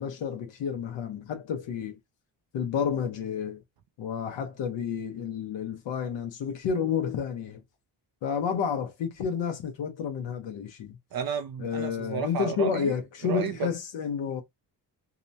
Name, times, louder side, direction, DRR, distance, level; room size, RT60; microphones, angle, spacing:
voice 1, 0.0-2.0 2.5-3.6 4.0-7.6 8.2-11.0 11.6-14.4, left 7 dB, 80° left, 0.8 m, -30 dB
voice 2, 11.1-12.9 13.2-13.7, right 7 dB, 55° right, 0.5 m, -32 dB
2.9 x 2.1 x 2.6 m
cardioid pair, 110°, 43 cm